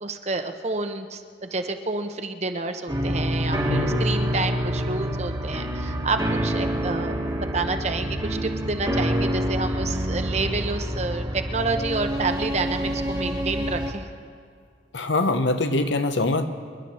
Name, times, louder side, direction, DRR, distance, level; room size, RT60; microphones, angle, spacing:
voice 1, 0.0-14.1, right 3 dB, 35° right, 7 dB, 0.8 m, -29 dB
sound 1, 2.9-13.9, equal, 20° right, 1.4 m, -27 dB
voice 2, 3.7-4.0 14.9-16.5, left 2 dB, 75° left, 8 dB, 0.9 m, -23 dB
26.5 x 11.0 x 4.3 m, 2.1 s
head